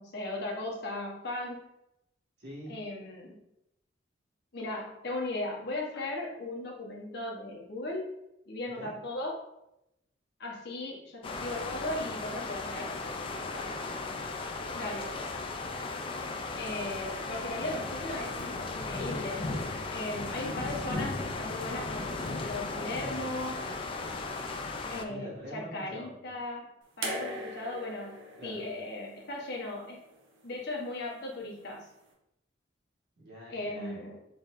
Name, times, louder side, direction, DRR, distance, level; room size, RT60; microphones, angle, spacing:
voice 1, 0.0-1.6 2.7-3.4 4.5-8.1 8.5-9.4 10.4-12.9 14.7-15.2 16.6-19.5 19.9-23.6 24.9-26.7 27.0-30.0 30.4-31.9 33.5-34.2, left 2 dB, 65° left, -2 dB, 1.0 m, -37 dB
voice 2, 2.4-2.8 8.6-8.9 13.4-13.9 20.4-20.7 25.1-26.1 28.4-28.6 33.2-34.0, equal, 65° right, -7 dB, 1.5 m, -45 dB
sound 1, 11.2-25.0, left 3 dB, 30° left, 0.4 m, -36 dB
sound 2, 27.0-30.2 31.4-31.5, right 1 dB, 85° right, 0.8 m, -40 dB
4.1 x 3.3 x 2.5 m, 0.86 s
head